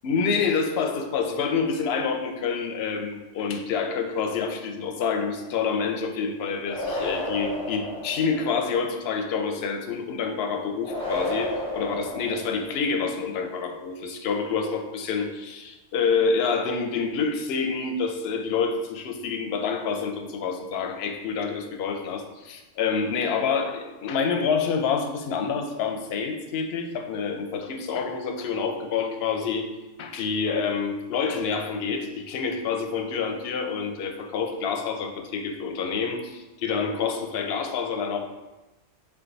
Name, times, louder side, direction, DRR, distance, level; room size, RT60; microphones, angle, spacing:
voice 1, 0.0-29.7 30.0-38.2, left 5 dB, 65° left, 5 dB, 0.7 m, -27 dB
sound 1, 6.7-8.7 10.8-12.9, left 1 dB, 5° left, 0.7 m, -32 dB
3.5 x 3.4 x 3.9 m, 1.1 s
omnidirectional pair, 1.2 m